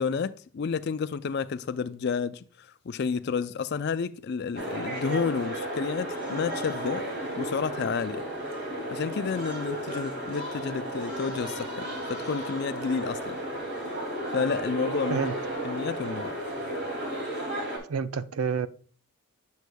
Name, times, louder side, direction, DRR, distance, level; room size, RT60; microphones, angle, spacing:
voice 1, 0.0-7.1 7.3-8.2 8.9-13.4 14.3-15.3 15.6-16.4, left 5 dB, 50° left, 0.4 m, -30 dB
sound 1, 4.5-17.8, right 1 dB, 50° right, 2.6 m, -33 dB
voice 2, 17.9-18.7, right 5 dB, 80° right, 0.5 m, -28 dB
8.0 x 7.1 x 2.2 m
head